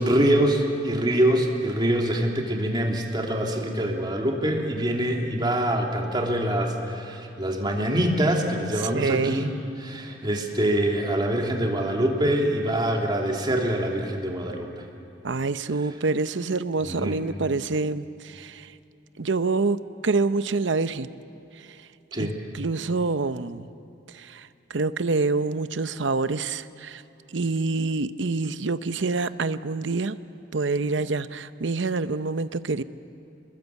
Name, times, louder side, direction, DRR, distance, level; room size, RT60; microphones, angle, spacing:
voice 1, 0.0-9.5 9.8-14.7 16.8-17.2 22.1-22.3, right 1 dB, 25° right, 0 dB, 2.9 m, -24 dB
voice 2, 8.9-9.4 15.2-18.7 19.2-21.1 22.2-23.7 24.1-27.0 27.3-30.2 30.5-32.8, right 3 dB, 70° right, 13 dB, 0.7 m, -26 dB
28.0 x 21.0 x 8.3 m, 2.7 s
head